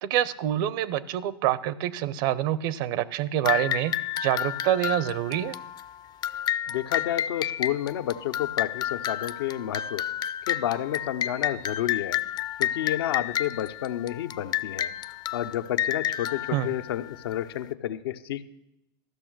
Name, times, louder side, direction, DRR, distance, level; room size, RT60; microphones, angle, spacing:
voice 1, 0.0-5.6 16.5-16.7, right 12 dB, 65° right, 18 dB, 0.6 m, -26 dB
sound 1, 3.5-17.6, left 11 dB, 35° left, 0.4 m, -31 dB
voice 2, 6.7-10.0 10.5-12.2 12.6-14.9 15.3-18.4, left 12 dB, 85° left, 10 dB, 0.6 m, -30 dB
13.5 x 6.3 x 6.1 m, 0.85 s
hypercardioid pair, 110°, 12 cm